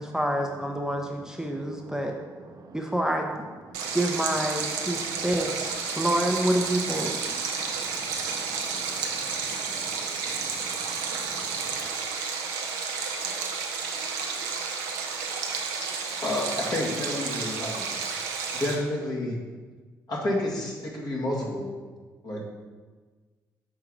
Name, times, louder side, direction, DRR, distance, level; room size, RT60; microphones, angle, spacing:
voice 1, 0.0-2.1 2.7-3.5 3.9-5.7 6.0-7.2, right 1 dB, 5° right, 2 dB, 0.7 m, -27 dB
voice 2, 1.4-2.8 3.7-4.0 4.8-5.2 5.9-6.1 7.3-11.9, right 3 dB, 45° right, 4 dB, 0.8 m, -47 dB
Stream, 3.7-18.8, right 5 dB, 85° right, 0.6 m, -31 dB
voice 3, 16.2-17.9 18.5-19.4 20.1-21.7 22.2-22.4, left 1 dB, 50° left, -4 dB, 1.8 m, -29 dB
6.3 x 3.7 x 4.8 m, 1.4 s
hypercardioid pair, 45°, 9 cm